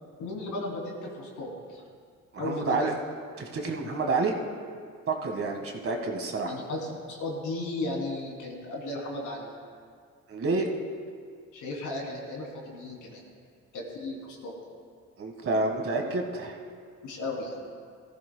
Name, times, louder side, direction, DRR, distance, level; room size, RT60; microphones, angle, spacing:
voice 1, 0.2-1.8 2.4-2.9 6.5-9.5 11.5-13.2 13.7-14.5 17.0-17.6, left 2 dB, 85° left, -2 dB, 3.1 m, -35 dB
voice 2, 2.3-2.9 3.4-4.3 5.1-6.5 10.3-10.7 15.2-16.6, right 3 dB, 45° right, 2 dB, 1.7 m, -29 dB
17.5 x 14.0 x 2.3 m, 2.1 s
cardioid pair, 90°, 30 cm